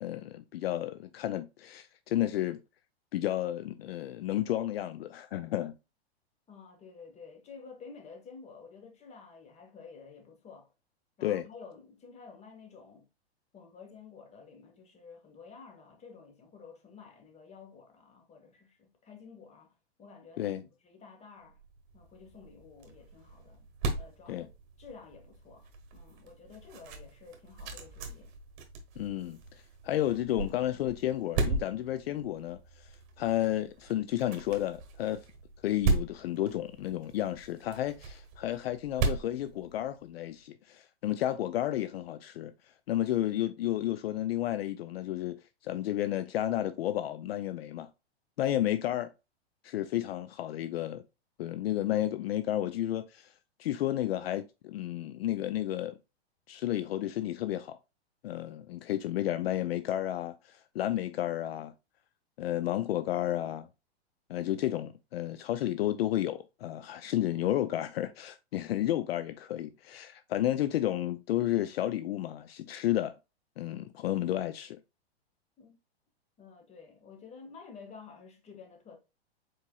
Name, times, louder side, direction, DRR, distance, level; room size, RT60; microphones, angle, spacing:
voice 1, 0.0-2.6 3.1-5.8 11.2-11.4 20.4-20.6 24.3-24.5 29.0-29.4 29.8-35.2 35.6-42.5 42.9-47.9 48.4-49.1 49.6-51.0 51.4-53.3 53.6-56.0 56.5-57.8 58.2-61.7 62.4-63.7 64.3-73.1 73.6-74.8, left 13 dB, 65° left, 0.5 m, -32 dB
voice 2, 6.5-10.7 11.2-13.1 13.5-21.6 21.9-23.7 23.9-24.5 24.8-28.3 75.6-75.7 76.4-79.0, left 5 dB, 20° left, 1.2 m, -51 dB
sound 1, 21.5-40.3, right 3 dB, 45° right, 1.3 m, -37 dB
4.6 x 4.4 x 2.3 m
hypercardioid pair, 115°, 32 cm